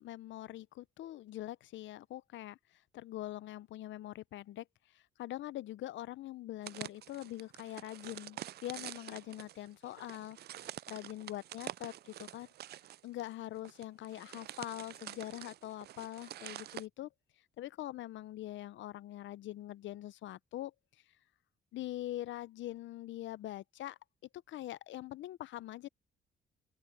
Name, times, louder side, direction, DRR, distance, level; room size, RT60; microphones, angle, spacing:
voice 1, 0.0-4.7 4.9-12.5 13.0-17.1 17.6-20.7 21.7-24.0 24.5-25.9, left 14 dB, 70° left, 0.6 m, -43 dB
sound 1, 6.6-16.9, right 12 dB, 55° right, 0.4 m, -47 dB
open air
cardioid pair, 90°, 20 cm